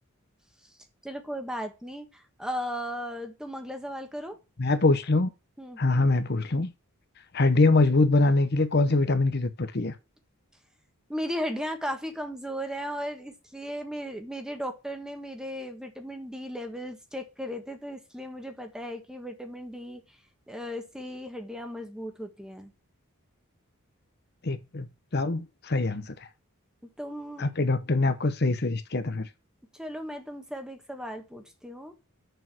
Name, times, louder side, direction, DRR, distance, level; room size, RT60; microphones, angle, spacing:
voice 1, 1.0-4.4 5.6-5.8 11.1-20.0 20.5-22.7 27.0-27.5 29.7-31.9, equal, 5° right, 1.3 m, -36 dB
voice 2, 4.6-5.3 5.8-6.7 7.3-9.9 24.4-24.9 25.1-26.1 27.4-29.3, left 2 dB, 50° left, 0.8 m, -24 dB
6.8 x 6.4 x 6.1 m
head